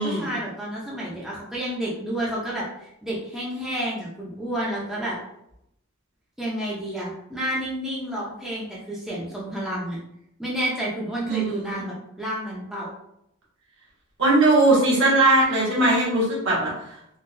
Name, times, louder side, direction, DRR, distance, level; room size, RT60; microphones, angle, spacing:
voice 1, 0.0-2.7 3.0-5.2 6.4-10.0 10.4-12.9, right 1 dB, ahead, -6 dB, 0.6 m, -30 dB
voice 2, 11.3-11.8 14.2-16.7, right 2 dB, 65° right, -6 dB, 1.4 m, -19 dB
3.7 x 2.3 x 2.6 m, 0.78 s
head